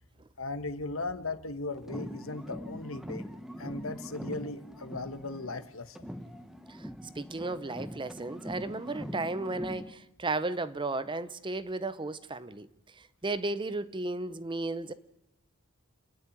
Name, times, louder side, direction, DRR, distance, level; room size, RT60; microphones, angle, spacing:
voice 1, 0.4-3.2 3.6-6.1, left 3 dB, 65° left, 1.4 m, -37 dB
sound 1, 1.8-5.7 5.9-9.9, equal, ahead, 1.0 m, -42 dB
voice 2, 7.2-12.7 12.9-14.9, right 2 dB, 20° right, 0.7 m, -34 dB
28.0 x 10.5 x 10.0 m
head